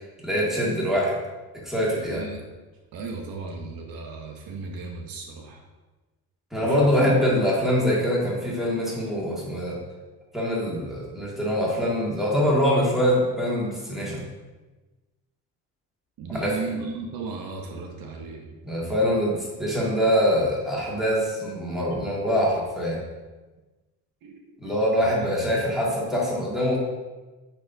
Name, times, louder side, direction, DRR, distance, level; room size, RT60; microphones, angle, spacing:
voice 1, 0.2-1.2 1.6-2.2 6.5-9.8 10.3-14.2 16.3-16.6 18.6-23.0 24.6-26.8, equal, ahead, -6 dB, 1.9 m, -24 dB
voice 2, 2.1-2.5 2.9-5.6 6.6-7.5 16.2-18.6 24.2-24.7 25.0-25.4, right 4 dB, 70° right, 3 dB, 0.9 m, -35 dB
8.3 x 4.3 x 2.7 m, 1.2 s
cardioid pair, 110°, 37 cm